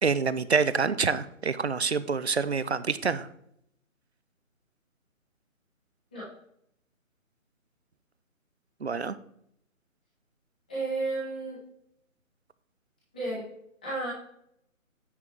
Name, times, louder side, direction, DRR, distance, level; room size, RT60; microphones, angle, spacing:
voice 1, 0.0-3.3 8.8-9.2, right 5 dB, 55° right, 15 dB, 0.4 m, -27 dB
voice 2, 10.7-11.6 13.1-13.4 13.8-14.1, right 2 dB, 5° left, -12 dB, 1.3 m, -32 dB
9.4 x 5.4 x 3.8 m, 0.73 s
hypercardioid pair, 180°, 42 cm